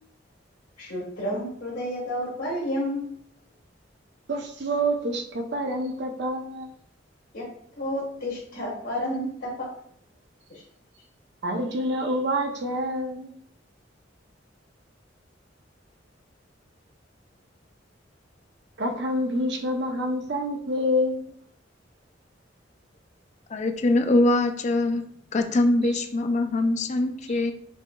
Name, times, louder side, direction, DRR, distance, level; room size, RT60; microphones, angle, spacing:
voice 1, 0.8-3.1 7.3-7.5 7.8-9.7, equal, 65° left, -5 dB, 1.3 m, -30 dB
voice 2, 4.3-6.7 11.4-13.3 18.8-21.3, equal, 65° right, 3 dB, 0.7 m, -27 dB
voice 3, 23.5-25.0 25.3-27.5, left 2 dB, 40° left, 6 dB, 0.4 m, -23 dB
5.7 x 2.9 x 2.3 m, 0.65 s
head